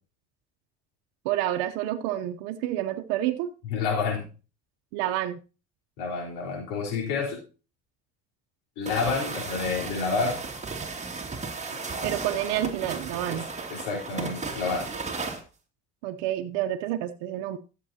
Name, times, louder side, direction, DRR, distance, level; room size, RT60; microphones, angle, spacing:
voice 1, 1.2-3.5 4.9-5.4 12.0-13.5 16.0-17.6, right 13 dB, 90° right, 6 dB, 0.8 m, -29 dB
voice 2, 3.7-4.3 6.0-7.4 8.8-10.4 13.3-13.4 13.7-14.9, left 4 dB, 85° left, 2 dB, 4.3 m, -29 dB
sound 1, 8.8-15.4, right 4 dB, 20° right, 2.4 m, -35 dB
14.0 x 7.5 x 2.8 m, 0.33 s
supercardioid pair, 85°, 32 cm